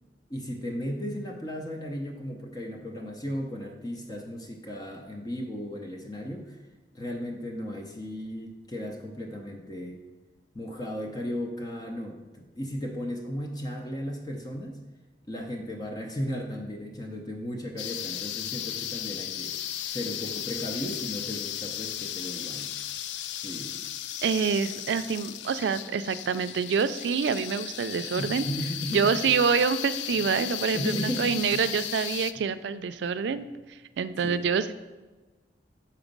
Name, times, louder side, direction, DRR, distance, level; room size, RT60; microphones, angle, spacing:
voice 1, 0.3-6.7 6.9-10.0 10.5-14.8 15.3-19.6 19.9-22.7 23.3-23.8 28.1-29.4 30.2-30.3 30.7-31.6 33.3-33.5 34.2-34.5, equal, 20° left, 2 dB, 0.6 m, -35 dB
sound 1, 17.8-32.3, left 11 dB, 85° left, 0.3 m, -35 dB
voice 2, 24.2-28.4 28.9-33.5 34.0-34.7, right 6 dB, 75° right, 13 dB, 0.3 m, -26 dB
6.0 x 4.3 x 5.2 m, 1.2 s
head